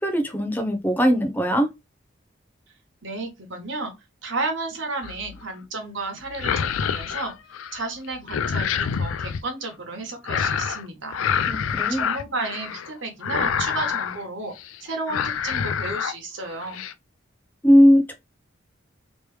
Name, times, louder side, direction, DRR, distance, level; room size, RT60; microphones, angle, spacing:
voice 1, 0.0-1.7 11.5-12.1 17.6-18.1, equal, 10° left, 0.6 m, -19 dB
voice 2, 3.0-3.9 4.2-7.3 7.7-11.3 11.9-14.5 14.8-16.8, right 3 dB, 70° right, 1.3 m, -32 dB
sound 1, 5.0-5.4 6.2-7.8 8.1-9.4 10.2-10.8 11.1-12.9 13.2-14.2 14.6-14.8 15.1-16.1 16.5-16.9, left 7 dB, 85° left, 0.4 m, -27 dB
3.2 x 3.0 x 3.2 m
head